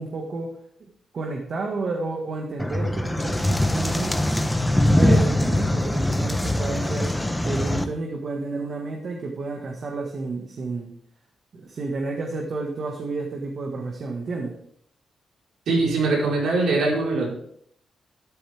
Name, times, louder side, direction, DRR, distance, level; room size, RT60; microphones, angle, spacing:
voice 1, 0.0-4.2 5.0-10.9 11.5-14.6, right 3 dB, 55° right, 1 dB, 1.8 m, -31 dB
sound 1, 2.6-7.8, left 1 dB, 10° left, 1.1 m, -22 dB
voice 2, 15.7-17.3, right 3 dB, 85° right, -3 dB, 4.8 m, -22 dB
12.5 x 10.5 x 3.6 m, 0.66 s
cardioid pair, 85°, 0 cm